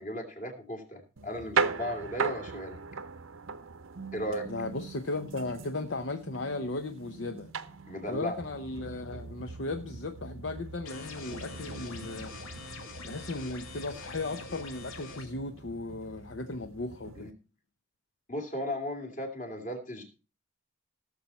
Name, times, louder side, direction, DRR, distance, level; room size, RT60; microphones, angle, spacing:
voice 1, 0.0-2.8 4.1-4.5 7.9-8.3 17.2-17.3 18.3-20.0, equal, 40° left, 2.8 m, -36 dB
sound 1, 1.2-17.3, right 5 dB, 75° right, 0.8 m, -39 dB
voice 2, 4.5-7.5 8.1-12.3 13.0-17.3, left 2 dB, 60° left, 0.7 m, -36 dB
sound 2, 10.9-15.3, left 4 dB, 85° left, 2.1 m, -45 dB
17.0 x 7.0 x 4.3 m
head